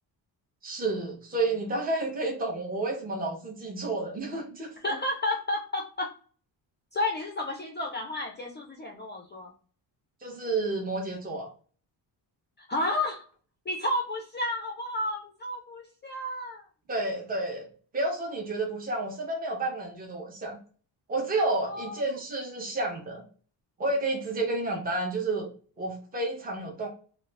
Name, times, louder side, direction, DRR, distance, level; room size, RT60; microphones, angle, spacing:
voice 1, 0.6-4.9 10.2-11.5 16.9-17.7 17.9-20.6 21.1-23.2 23.8-25.5 25.8-26.9, right 2 dB, 20° right, 1 dB, 0.7 m, -30 dB
voice 2, 4.8-6.1 6.9-9.5 12.6-13.3 13.7-16.7 21.6-22.0, left 1 dB, 25° left, 1 dB, 0.3 m, -31 dB
2.2 x 2.0 x 3.2 m, 0.41 s
cardioid pair, 115°, 44 cm